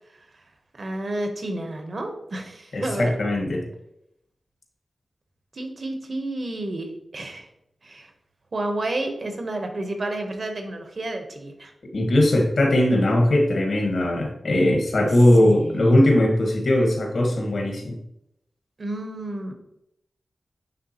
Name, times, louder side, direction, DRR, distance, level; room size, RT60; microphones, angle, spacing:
voice 1, 0.8-3.1 5.5-7.5 7.8-8.1 8.5-11.7 15.4-15.8 18.8-19.5, right 2 dB, 50° right, 5 dB, 1.0 m, -30 dB
voice 2, 2.7-3.6 11.9-18.0, left 1 dB, 70° left, 1 dB, 1.4 m, -19 dB
9.5 x 3.5 x 2.9 m, 0.79 s
wide cardioid pair, 115°, 0 cm